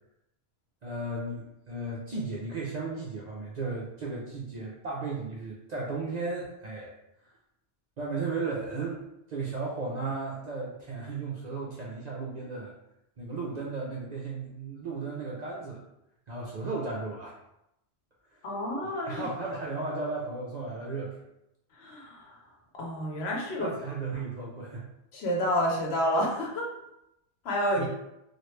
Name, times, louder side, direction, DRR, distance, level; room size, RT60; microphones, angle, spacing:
voice 1, 0.8-6.9 7.2-7.3 8.0-9.0 9.3-12.7 13.2-15.8 16.3-17.4 18.3-18.5 19.0-21.2 23.6-24.8 27.8-27.9, right 3 dB, 55° right, -4 dB, 0.5 m, -35 dB
voice 2, 18.4-19.3 21.7-22.3 22.7-23.7 25.1-26.7 27.4-27.9, equal, 75° left, -1 dB, 1.0 m, -29 dB
3.0 x 2.4 x 3.0 m, 0.86 s
omnidirectional pair, 1.1 m